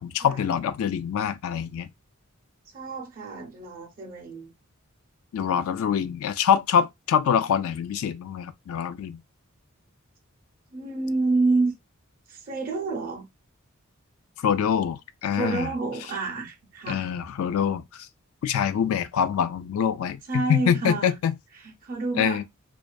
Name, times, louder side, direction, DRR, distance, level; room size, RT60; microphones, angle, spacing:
voice 1, 0.0-1.9 5.3-9.2 14.4-15.7 16.9-17.8 18.4-21.3 22.2-22.4, left 8 dB, 70° left, 0.3 m, -25 dB
voice 2, 2.6-4.5 10.7-11.7 12.3-13.2 15.3-17.1 20.3-21.1 21.5-22.4, right 3 dB, 40° right, 0.5 m, -28 dB
2.5 x 2.3 x 2.2 m
head